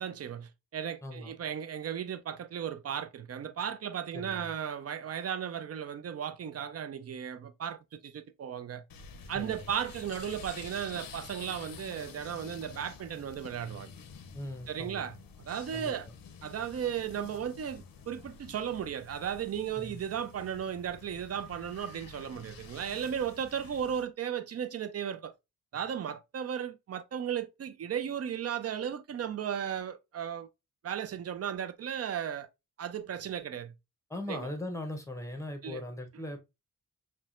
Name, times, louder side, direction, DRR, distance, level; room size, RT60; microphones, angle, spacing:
voice 1, 0.0-8.8 9.3-13.9 14.7-15.2 15.5-16.1 16.4-25.3 25.7-30.5 30.8-32.5 32.8-33.7 34.3-34.5 35.6-35.8, right 8 dB, 50° right, 0.4 m, -35 dB
voice 2, 1.0-1.4 4.1-4.5 9.3-9.7 14.3-15.1 15.7-15.9 19.8-20.0 34.1-36.4, left 1 dB, 10° left, 0.7 m, -39 dB
sound 1, 8.9-24.0, left 6 dB, 85° left, 0.6 m, -49 dB
5.8 x 2.1 x 2.4 m
wide cardioid pair, 140°, 33 cm